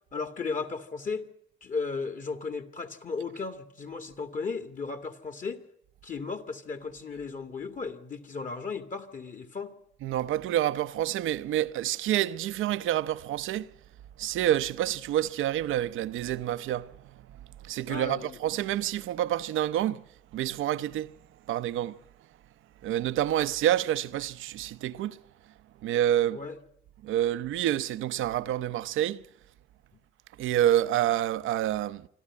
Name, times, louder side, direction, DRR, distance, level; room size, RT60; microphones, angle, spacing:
voice 1, 0.1-1.3 1.6-5.6 6.0-9.8 17.9-18.4 26.3-26.6, left 4 dB, 40° left, 2.1 m, -35 dB
voice 2, 10.0-13.7 14.2-17.2 17.6-21.1 21.5-22.0 22.8-25.2 25.8-26.4 27.0-29.2 30.4-32.1, right 12 dB, 85° right, 0.8 m, -28 dB
26.0 x 12.5 x 9.7 m
cardioid pair, 90°, 20 cm